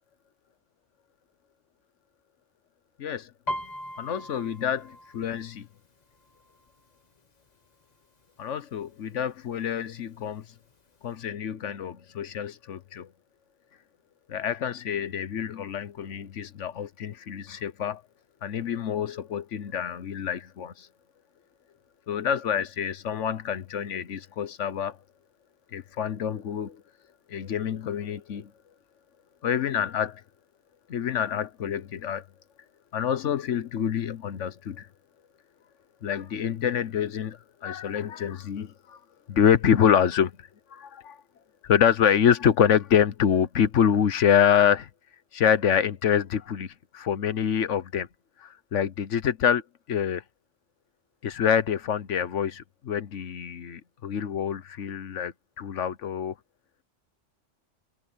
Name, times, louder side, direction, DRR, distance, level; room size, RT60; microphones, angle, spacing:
voice 1, 3.0-3.3 4.0-5.7 8.4-10.4 11.0-13.1 14.3-18.0 18.4-20.9 22.1-25.0 25.7-26.8 27.3-28.5 29.4-30.2 30.9-32.2 32.9-34.9 36.0-39.0 39.3-40.3 40.7-41.2 41.6-44.9 45.3-48.1 48.4-49.6 49.9-50.2 51.2-56.3, left 8 dB, 80° left, 1.3 m, -26 dB
Piano, 3.5-7.1 7.5-7.9 8.2-8.9 9.4-9.5 9.8-10.8 11.2-11.3, left 1 dB, 35° left, 1.6 m, -39 dB
omnidirectional pair, 1.2 m